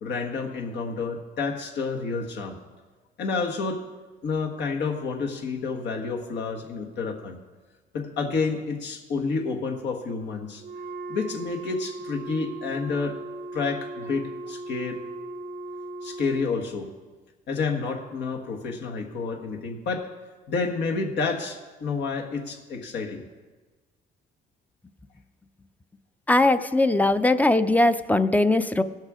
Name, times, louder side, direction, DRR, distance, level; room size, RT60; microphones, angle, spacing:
voice 1, 0.0-2.6 3.2-3.8 4.2-7.4 7.9-10.6 11.1-13.2 13.5-15.0 16.0-16.9 17.5-20.1 20.5-23.3, left 4 dB, 75° left, 2 dB, 1.5 m, -29 dB
Wind instrument woodwind instrument, 10.6-16.7, right 2 dB, 60° right, 0.7 m, -38 dB
voice 2, 26.3-28.8, left 2 dB, 10° left, 12 dB, 0.4 m, -20 dB
16.5 x 6.5 x 4.9 m, 1.3 s
cardioid pair, 95°, 18 cm